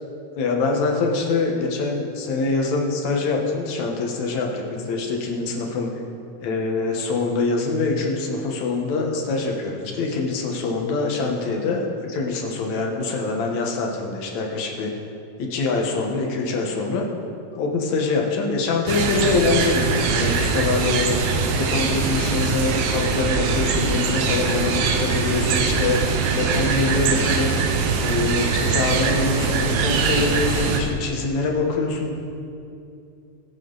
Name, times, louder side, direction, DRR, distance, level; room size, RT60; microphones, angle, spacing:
voice 1, 0.4-5.9 6.4-11.8 12.1-14.9 15.4-17.1 17.5-21.2 21.5-26.0 26.3-27.6 28.0-32.1, left 3 dB, 70° left, 0 dB, 2.6 m, -24 dB
sound 1, 18.9-30.8, right 4 dB, 80° right, 2.3 m, -22 dB
20.0 x 7.5 x 4.0 m, 2.6 s
omnidirectional pair, 3.4 m